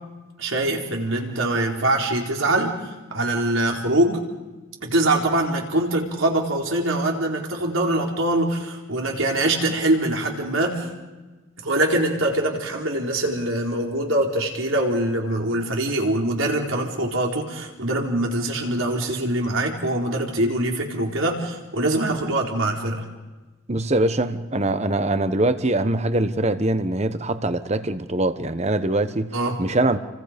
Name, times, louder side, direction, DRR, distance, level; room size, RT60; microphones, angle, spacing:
voice 1, 0.4-2.8 3.1-4.2 4.8-10.9 11.6-23.0 29.3-29.6, right 1 dB, 75° right, 4.4 m, -23 dB
voice 2, 23.7-29.3 29.6-30.0, right 2 dB, 30° right, 1.2 m, -23 dB
30.0 x 25.0 x 5.3 m
head